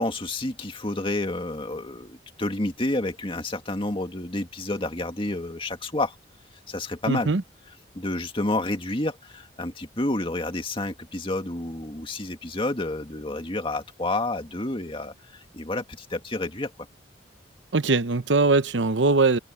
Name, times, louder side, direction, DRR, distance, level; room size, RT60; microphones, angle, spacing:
voice 1, 0.0-6.2 6.7-7.3 7.9-16.7, left 2 dB, 30° left, 2.1 m, -29 dB
voice 2, 7.1-7.4 17.7-19.4, right 3 dB, 85° right, 0.9 m, -21 dB
head